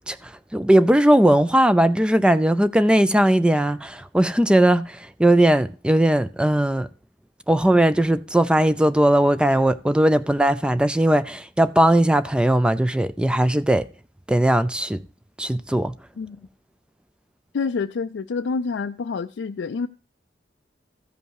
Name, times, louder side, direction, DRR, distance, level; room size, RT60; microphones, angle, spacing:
voice 1, 0.1-6.9 7.5-13.9 14.3-15.0 15.4-15.9, right 1 dB, 5° right, 0.4 m, -19 dB
voice 2, 17.5-19.9, left 4 dB, 75° left, 0.4 m, -27 dB
14.5 x 5.4 x 4.7 m
head